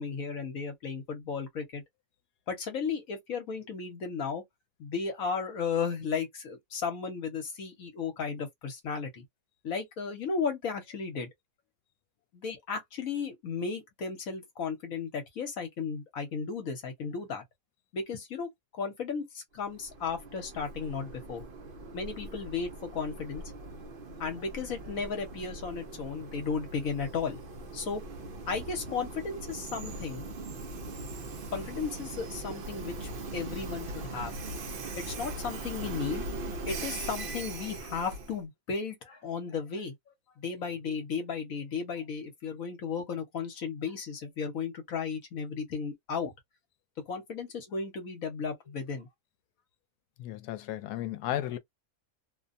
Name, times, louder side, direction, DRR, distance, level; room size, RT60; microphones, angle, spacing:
voice 1, 0.0-1.8 2.5-4.4 4.8-9.2 9.6-11.3 12.3-17.4 17.9-18.5 18.8-21.4 21.9-23.4 24.2-27.4 27.7-28.0 28.5-30.2 31.5-34.3 35.0-36.2 36.7-39.9 40.4-46.3 47.1-49.1, left 5 dB, 65° left, 1.2 m, -35 dB
Train, 19.6-38.4, right 2 dB, 60° right, 0.6 m, -40 dB
voice 2, 50.2-51.6, left 12 dB, 90° left, 1.1 m, -34 dB
2.8 x 2.2 x 2.5 m
omnidirectional pair, 1.6 m